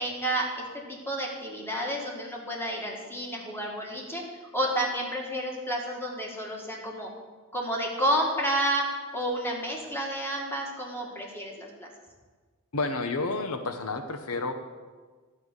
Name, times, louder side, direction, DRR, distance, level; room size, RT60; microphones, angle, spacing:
voice 1, 0.0-4.2 4.5-7.1 7.5-8.9 9.1-11.9, right 1 dB, 10° left, -1 dB, 1.9 m, -30 dB
voice 2, 12.7-14.5, left 3 dB, 85° left, 7 dB, 0.9 m, -30 dB
11.5 x 5.7 x 7.9 m, 1.4 s
head